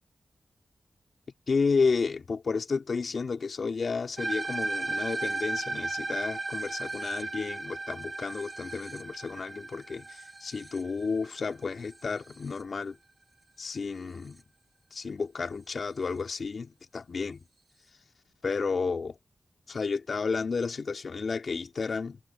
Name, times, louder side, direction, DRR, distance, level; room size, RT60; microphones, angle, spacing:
voice 1, 1.5-13.0 13.6-14.4 14.9-17.4 18.4-19.2 19.7-22.2, left 4 dB, 65° left, 2.7 m, -31 dB
sound 1, 4.2-12.6, right 2 dB, 40° right, 2.5 m, -35 dB
cardioid pair, 50°, 0 cm